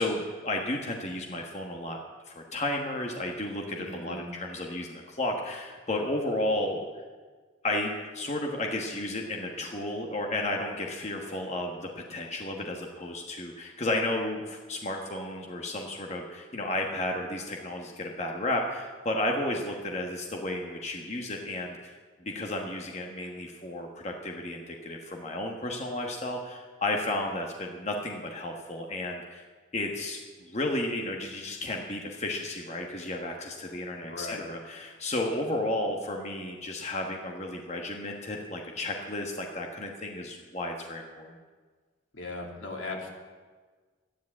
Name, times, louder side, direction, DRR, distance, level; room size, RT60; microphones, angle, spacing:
voice 1, 0.0-2.0 2.3-6.8 7.6-29.5 29.7-41.4, left 1 dB, 35° left, 1 dB, 1.3 m, -33 dB
voice 2, 3.8-4.3 34.0-34.4 42.1-43.1, left 2 dB, 80° left, 0 dB, 2.6 m, -38 dB
12.5 x 10.5 x 8.5 m, 1.4 s
head